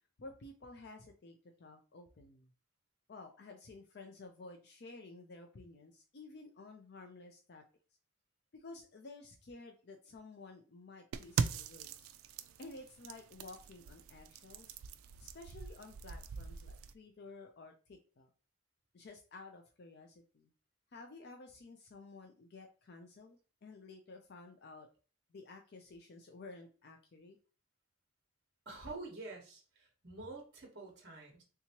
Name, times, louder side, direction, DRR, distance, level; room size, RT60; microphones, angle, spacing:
voice 1, 0.2-2.5 3.1-7.6 8.5-12.1 12.6-14.8 15.2-18.3 18.9-20.5 20.9-24.9 25.3-27.4, left 3 dB, 50° left, 4 dB, 0.4 m, -53 dB
sound 1, 11.1-16.9, right 5 dB, 80° right, 0.3 m, -41 dB
voice 2, 28.6-31.4, right 3 dB, 50° right, 1 dB, 1.1 m, -48 dB
3.4 x 2.8 x 2.9 m, 0.36 s
head